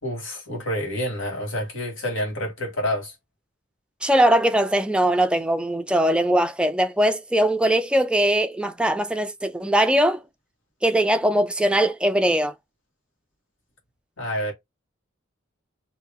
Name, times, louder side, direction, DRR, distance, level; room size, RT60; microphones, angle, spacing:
voice 1, 0.0-3.1 14.2-14.5, equal, 70° left, 1.7 m, -28 dB
voice 2, 4.0-10.2 10.8-12.5, right 1 dB, 5° right, 0.3 m, -21 dB
2.8 x 2.8 x 3.5 m
head